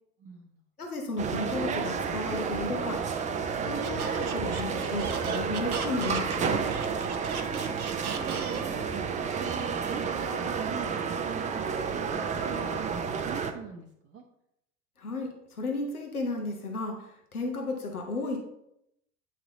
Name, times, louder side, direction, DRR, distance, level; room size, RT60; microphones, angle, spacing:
voice 1, 0.2-0.6 7.6-9.0 9.3-14.2, right 6 dB, 35° right, 0 dB, 0.8 m, -43 dB
voice 2, 0.8-3.0 3.7-6.6 15.0-18.4, left 2 dB, 90° left, 1 dB, 1.0 m, -34 dB
sound 1, 1.2-13.5, right 6 dB, 20° right, 0.4 m, -31 dB
Squeak, 3.8-8.9, right 6 dB, 80° right, 0.8 m, -37 dB
8.6 x 3.2 x 3.9 m, 0.79 s
figure-of-eight pair, 80°, 43 cm